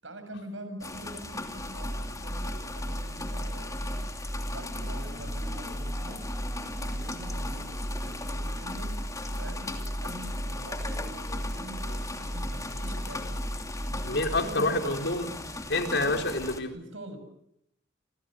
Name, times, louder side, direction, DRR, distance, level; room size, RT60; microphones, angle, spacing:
voice 1, 0.0-4.0 4.5-6.3 6.5-9.0 9.3-13.4 13.8-15.4 16.6-17.2, right 1 dB, 75° right, 9 dB, 7.5 m, -44 dB
sound 1, 0.8-16.6, left 2 dB, 15° left, 2.8 m, -39 dB
sound 2, 1.6-14.4, equal, 20° right, 5.1 m, -35 dB
sound 3, 4.5-9.7, right 2 dB, ahead, 2.6 m, -50 dB
voice 2, 14.1-15.3 15.7-16.7, left 2 dB, 60° left, 5 dB, 4.3 m, -27 dB
28.0 x 28.0 x 6.6 m, 0.74 s
head